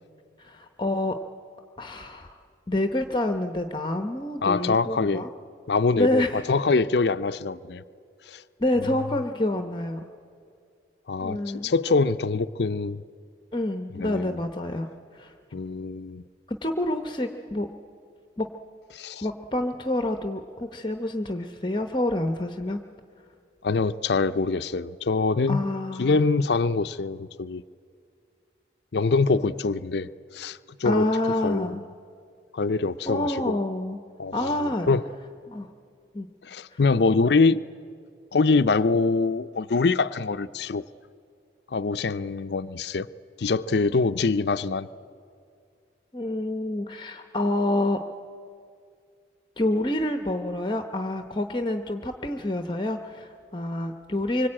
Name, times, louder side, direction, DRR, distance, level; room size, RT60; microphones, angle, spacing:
voice 1, 0.4-1.2 1.8-2.4 2.7-5.3 6.0-6.4 8.6-10.0 11.2-11.7 13.5-14.9 15.1-15.3 16.5-17.7 18.4-18.5 19.2-22.8 25.5-26.2 30.8-31.8 33.1-34.0 34.3-34.9 35.5-35.7 36.1-36.3 36.7-36.8 46.1-48.0 49.6-54.5, left 1 dB, 25° left, 7 dB, 0.8 m, -27 dB
voice 2, 4.4-5.2 5.7-7.8 8.3-8.4 11.1-13.0 13.9-14.4 15.5-16.2 18.9-19.3 23.6-25.6 26.0-27.6 28.9-31.1 31.4-31.7 32.5-33.6 34.2-35.0 36.4-37.6 38.3-40.8 41.7-43.1 43.4-44.9, left 4 dB, 70° left, 11 dB, 0.5 m, -24 dB
25.0 x 24.0 x 8.7 m, 2.3 s
head